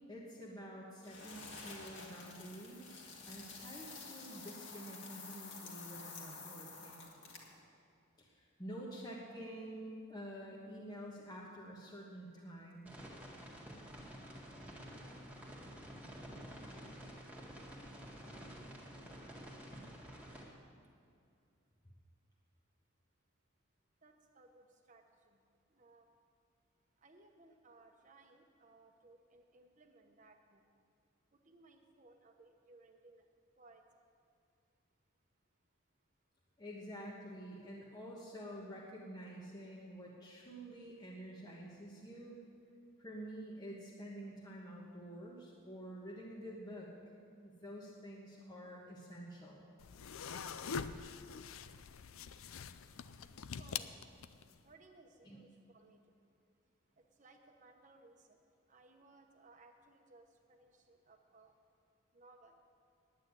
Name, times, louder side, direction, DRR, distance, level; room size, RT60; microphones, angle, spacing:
voice 1, 0.1-7.0 8.2-12.9 36.6-42.4 43.0-46.9 47.4-49.6 55.2-55.4, equal, 20° left, -4 dB, 1.3 m, -49 dB
sound 1, 1.0-7.6, left 4 dB, 55° left, 1.9 m, -50 dB
sound 2, 12.9-20.4, equal, 5° right, 1.7 m, -50 dB
voice 2, 24.0-25.4 25.7-26.1 27.0-30.6 31.4-33.3 33.6-33.8 53.6-53.9 54.6-56.2 57.0-58.4 58.7-61.5 62.1-62.5, right 2 dB, 35° right, 4 dB, 1.0 m, -63 dB
sound 3, 49.8-54.6, left 6 dB, 75° left, 0.5 m, -44 dB
9.6 x 9.0 x 9.7 m, 2.4 s
head